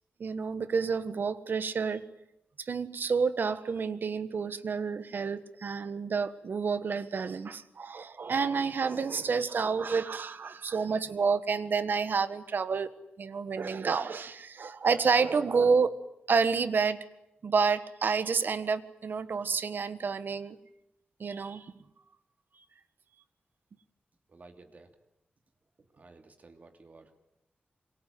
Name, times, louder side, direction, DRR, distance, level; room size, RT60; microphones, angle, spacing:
voice 1, 0.2-2.0 2.6-12.9 13.2-16.0 16.3-17.0 17.4-20.6 21.2-21.7, right 5 dB, 65° right, 12 dB, 1.6 m, -29 dB
voice 2, 24.3-24.9 25.9-27.2, right 3 dB, 45° right, 6 dB, 2.9 m, -54 dB
26.0 x 23.5 x 9.4 m, 0.85 s
wide cardioid pair, 130°, 4 cm